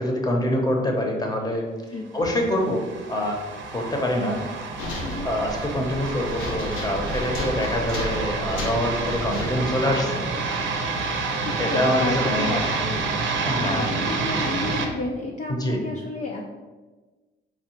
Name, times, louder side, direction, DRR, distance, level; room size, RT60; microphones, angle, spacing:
voice 1, 0.0-1.7 2.1-3.4 3.7-4.4 5.2-10.2 11.6-12.7 13.4-13.9 15.5-15.8, left 1 dB, 20° left, 1 dB, 0.9 m, -25 dB
sound 1, 2.3-14.9, right 4 dB, 70° right, 0.7 m, -29 dB
sound 2, 4.8-10.0, left 1 dB, 90° left, 0.9 m, -33 dB
voice 2, 5.0-5.4 11.4-13.0 13.6-16.5, left 2 dB, 40° left, -1 dB, 0.5 m, -31 dB
4.7 x 2.3 x 4.4 m, 1.3 s
cardioid pair, 90°, 20 cm